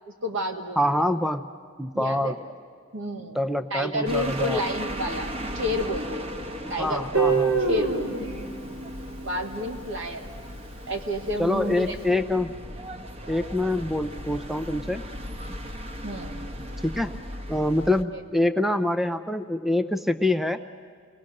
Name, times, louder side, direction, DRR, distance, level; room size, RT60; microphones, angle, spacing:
voice 1, 0.1-0.9 1.9-2.4 2.9-3.4 3.7-6.3 6.7-7.1 7.7-8.3 9.2-10.3 10.9-12.2 16.0-16.4 18.1-18.2, left 1 dB, 70° right, 3 dB, 2.2 m, -30 dB
voice 2, 0.8-1.5 1.8-2.4 3.3-4.6 6.8-7.6 11.4-12.5 13.3-15.0 16.9-17.2 17.5-20.6, left 1 dB, ahead, 10 dB, 0.5 m, -25 dB
sound 1, 4.1-18.0, equal, 30° right, 1.0 m, -37 dB
Guitar, 7.1-10.1, right 4 dB, 85° right, 3.9 m, -26 dB
29.5 x 19.5 x 6.5 m, 2.3 s
head